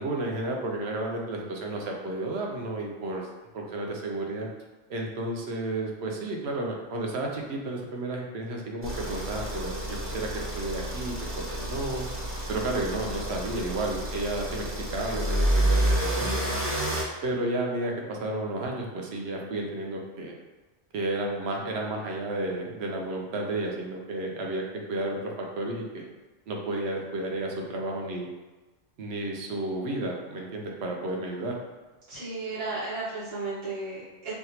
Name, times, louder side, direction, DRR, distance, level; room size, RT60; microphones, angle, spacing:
voice 1, 0.0-3.3 3.5-4.5 4.9-12.1 12.5-16.3 17.2-20.4 20.9-26.1 26.5-28.3 29.0-31.5, right 2 dB, 65° right, 0 dB, 0.8 m, -32 dB
sound 1, 8.8-17.0, right 1 dB, 20° right, 0.3 m, -29 dB
voice 2, 32.1-34.3, right 3 dB, 85° right, -12 dB, 1.4 m, -34 dB
3.4 x 2.3 x 2.8 m, 1.2 s
omnidirectional pair, 1.2 m